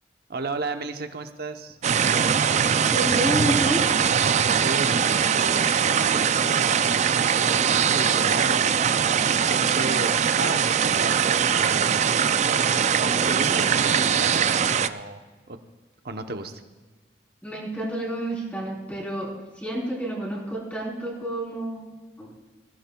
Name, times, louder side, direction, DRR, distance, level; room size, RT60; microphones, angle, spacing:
voice 1, 0.3-1.8 4.6-9.0 9.3-11.2 11.5-12.0 12.4-15.2 15.5-15.6 16.0-16.6, right 3 dB, 60° right, 7 dB, 0.9 m, -34 dB
sound 1, 1.8-14.9, right 7 dB, 40° right, 0.4 m, -21 dB
voice 2, 2.7-3.8 12.8-13.7 17.4-21.9 22.2-22.3, right 1 dB, 10° left, -4 dB, 3.7 m, -30 dB
20.5 x 16.0 x 2.3 m, 1.3 s
head